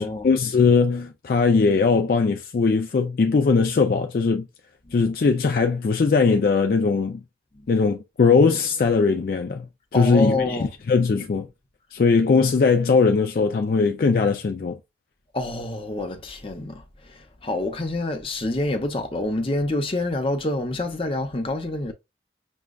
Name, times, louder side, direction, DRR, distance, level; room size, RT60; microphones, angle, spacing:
voice 1, 0.0-4.5 4.9-7.2 7.7-9.7 9.9-11.5 11.9-14.8, left 4 dB, 50° left, 0.3 m, -20 dB
voice 2, 9.9-10.7 15.3-21.9, left 2 dB, 30° left, 0.7 m, -27 dB
6.1 x 2.2 x 2.3 m
head